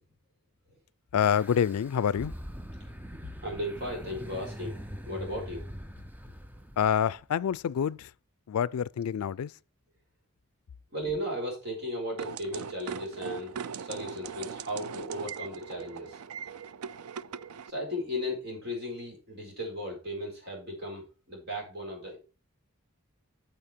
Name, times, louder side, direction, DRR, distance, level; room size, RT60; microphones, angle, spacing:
voice 1, 1.1-2.3 6.8-8.1 8.5-9.5, left 8 dB, 85° left, 0.3 m, -27 dB
sound 1, 1.2-7.2, equal, 10° right, 0.5 m, -43 dB
voice 2, 3.4-5.7 10.9-16.2 17.7-22.2, equal, 45° right, 4.7 m, -36 dB
sound 2, 12.2-17.7, right 6 dB, 85° right, 0.4 m, -40 dB
8.6 x 7.2 x 4.4 m
head